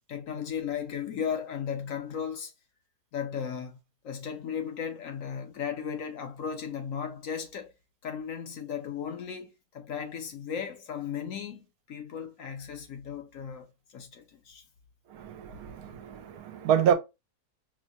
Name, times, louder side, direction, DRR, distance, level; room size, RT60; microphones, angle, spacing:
voice 1, 0.1-2.5 3.1-3.8 4.0-7.7 8.0-13.7 13.9-14.6, left 7 dB, 65° left, 1.0 m, -36 dB
voice 2, 15.1-16.9, right 9 dB, 75° right, 1.0 m, -27 dB
4.9 x 2.1 x 2.6 m
omnidirectional pair, 1.7 m